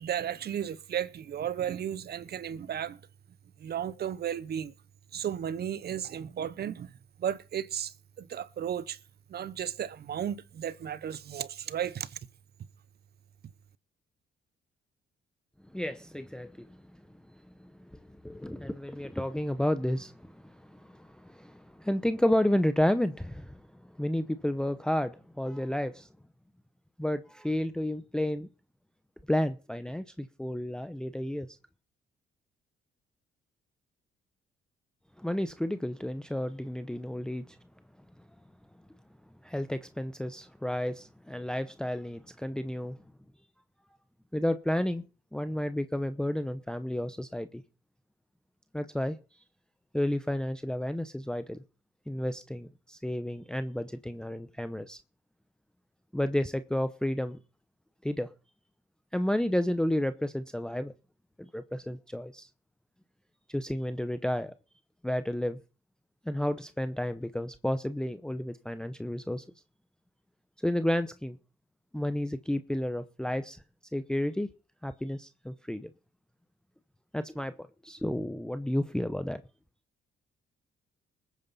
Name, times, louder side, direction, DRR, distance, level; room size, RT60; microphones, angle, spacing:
voice 1, 0.0-3.0 3.6-4.7 5.1-6.9 7.2-9.0 9.3-12.2, right 9 dB, 55° right, 0.8 m, -34 dB
voice 2, 15.7-16.8 17.6-23.6 24.0-26.1 27.0-28.5 29.3-31.5 35.2-37.6 39.4-43.0 44.3-45.0 45.3-47.6 48.7-49.2 49.9-51.6 52.1-55.0 56.1-57.4 58.0-58.3 59.1-60.9 61.4-62.5 63.5-64.5 65.0-65.6 66.2-69.4 70.6-71.4 71.9-73.6 73.9-74.5 74.8-75.9 77.1-79.4, left 1 dB, 5° left, 0.7 m, -31 dB
20.5 x 9.2 x 4.2 m
cardioid pair, 90°, 20 cm